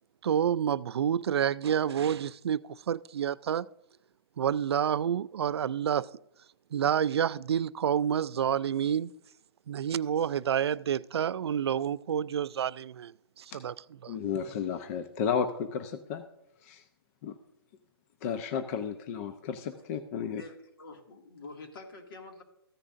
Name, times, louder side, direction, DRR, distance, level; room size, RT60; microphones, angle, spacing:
voice 1, 0.2-2.6 2.9-3.7 4.4-6.1 6.7-9.1 9.7-13.7 14.0-14.2, right 8 dB, 85° right, 0.4 m, -28 dB
voice 2, 14.1-16.2 16.6-16.8 17.2-17.3 18.2-20.4, left 7 dB, 35° left, 0.6 m, -33 dB
voice 3, 20.2-22.4, left 3 dB, 60° left, 2.2 m, -47 dB
14.5 x 9.9 x 2.6 m
hypercardioid pair, 150°, 13 cm